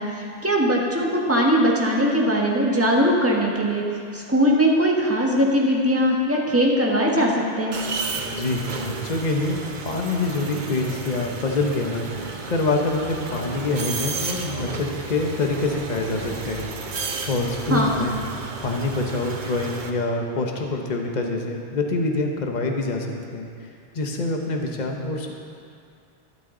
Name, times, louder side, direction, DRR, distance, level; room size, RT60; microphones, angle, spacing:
voice 1, 0.0-3.8 4.1-7.3 7.6-7.8 17.7-18.0, equal, 15° right, -3 dB, 1.5 m, -20 dB
sound 1, 7.7-19.9, right 4 dB, 50° right, 0.9 m, -33 dB
voice 2, 8.2-9.6 9.8-16.7 17.3-18.2 18.6-23.5 23.9-25.3, left 2 dB, 45° left, 2 dB, 1.1 m, -26 dB
12.5 x 12.0 x 3.9 m, 2.4 s
omnidirectional pair, 1.1 m